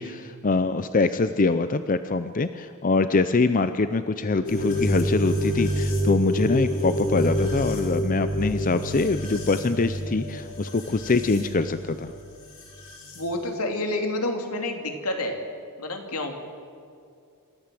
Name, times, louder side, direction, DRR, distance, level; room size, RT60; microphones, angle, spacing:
voice 1, 0.0-12.1, left 3 dB, 35° left, 11 dB, 0.6 m, -24 dB
sound 1, 4.4-13.2, equal, 60° left, 7.2 m, -28 dB
voice 2, 13.1-15.4 15.8-16.4, left 1 dB, 80° left, 4 dB, 2.8 m, -28 dB
27.0 x 14.0 x 7.7 m, 2.4 s
head